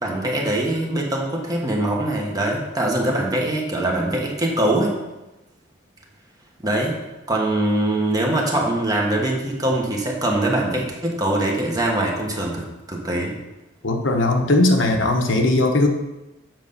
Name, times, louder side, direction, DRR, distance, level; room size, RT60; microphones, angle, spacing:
voice 1, 0.0-4.9 6.6-6.9 7.3-13.3, right 1 dB, 20° right, -1 dB, 1.3 m, -22 dB
voice 2, 13.8-15.9, left 2 dB, 65° left, 3 dB, 1.0 m, -18 dB
7.7 x 5.2 x 5.5 m, 1.0 s
head